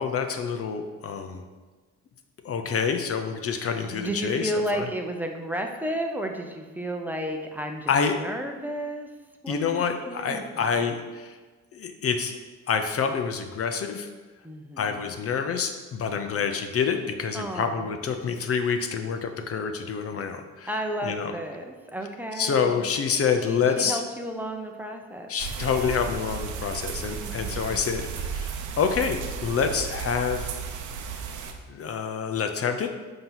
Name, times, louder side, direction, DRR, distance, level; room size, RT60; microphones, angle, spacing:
voice 1, 0.0-1.4 2.4-4.9 7.9-8.2 9.5-11.4 11.7-12.3 12.7-14.1 14.8-20.7 21.0-21.3 22.4-24.0 25.3-30.5 31.7-32.9, left 6 dB, 50° left, 6 dB, 0.6 m, -27 dB
voice 2, 3.6-9.1 9.4-10.7 14.4-15.1 16.1-16.5 17.3-18.0 20.7-22.9 23.4-25.3 27.2-27.9, right 1 dB, 5° right, 2 dB, 0.7 m, -33 dB
sound 1, 25.4-31.5, right 6 dB, 80° right, 0.8 m, -34 dB
7.5 x 2.9 x 5.8 m, 1.3 s
cardioid pair, 90°, 30 cm